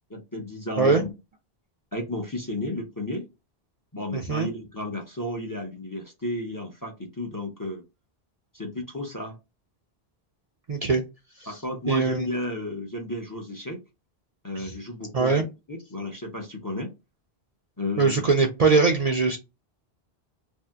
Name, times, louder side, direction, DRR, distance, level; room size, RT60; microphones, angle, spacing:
voice 1, 0.1-1.1 1.9-3.3 3.9-7.8 8.5-9.3 11.5-13.8 14.4-15.4 15.7-16.9 17.8-18.2, left 1 dB, 25° left, 1 dB, 0.6 m, -33 dB
voice 2, 4.1-4.5 10.7-11.0 11.4-11.5 11.9-12.3 14.6-14.7 15.1-15.4 18.0-19.4, right 4 dB, 50° right, 2 dB, 0.5 m, -22 dB
2.7 x 2.0 x 3.3 m, 0.24 s
omnidirectional pair, 1.1 m